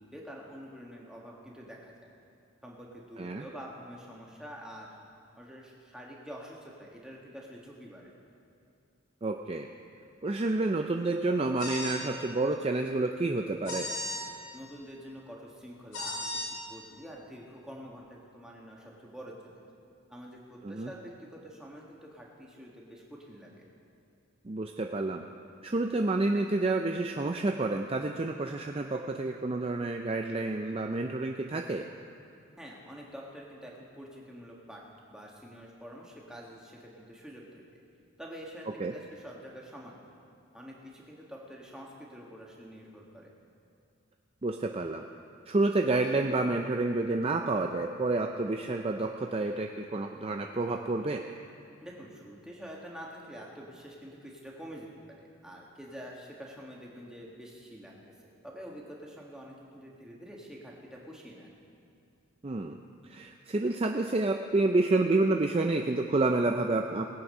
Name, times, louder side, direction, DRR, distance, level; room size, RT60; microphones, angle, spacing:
voice 1, 0.0-2.1 2.6-4.9 5.4-8.1 14.5-19.6 20.1-23.7 32.6-34.8 35.1-37.8 38.2-40.0 40.5-43.3 51.8-54.9 55.2-58.1 58.4-61.5, equal, 5° right, -3 dB, 1.6 m, -47 dB
voice 2, 9.2-9.7 10.2-13.9 20.6-20.9 24.4-25.2 25.6-31.8 38.8-38.9 44.4-45.0 45.5-51.2 62.4-62.8 63.0-67.0, right 2 dB, 25° right, 4 dB, 0.4 m, -29 dB
sound 1, 11.6-12.0 13.7-14.2 15.9-16.5, left 1 dB, 90° left, 3.5 m, -35 dB
19.5 x 8.5 x 5.5 m, 2.6 s
head